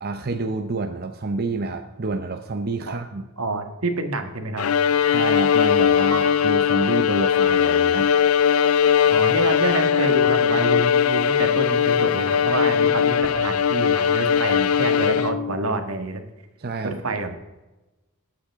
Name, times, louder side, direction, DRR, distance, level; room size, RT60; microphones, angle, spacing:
voice 1, 0.0-3.3 5.1-8.1 16.6-17.0, right 3 dB, 45° right, 6 dB, 0.7 m, -28 dB
voice 2, 3.4-4.7 9.1-16.2 16.8-17.4, right 2 dB, 75° right, 6 dB, 1.6 m, -27 dB
Bowed string instrument, 4.6-15.6, left 8 dB, 75° left, 0.5 m, -19 dB
Piano, 6.1-8.1 8.6-8.7, right 2 dB, 20° left, 3.0 m, -38 dB
19.5 x 8.6 x 3.6 m, 1.1 s
head